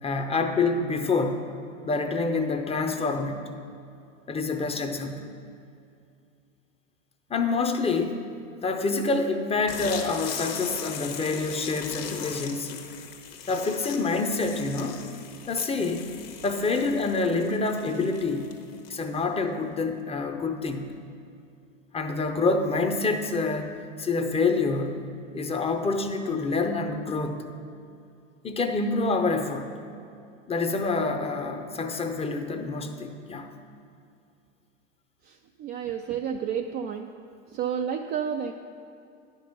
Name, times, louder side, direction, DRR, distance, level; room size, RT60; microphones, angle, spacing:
voice 1, 0.0-1.5 1.8-3.5 4.3-5.3 7.3-8.3 8.6-12.8 13.5-15.1 15.5-16.1 16.4-18.5 18.9-21.0 21.9-27.5 28.4-29.7 30.5-33.5, left 3 dB, 15° left, 6 dB, 0.7 m, -27 dB
sound 1, 9.7-19.2, left 7 dB, 50° left, 1.3 m, -39 dB
voice 2, 35.6-37.1 37.5-38.5, right 8 dB, 25° right, 4 dB, 0.3 m, -30 dB
10.5 x 5.4 x 6.9 m, 2.5 s
hypercardioid pair, 90°, 39 cm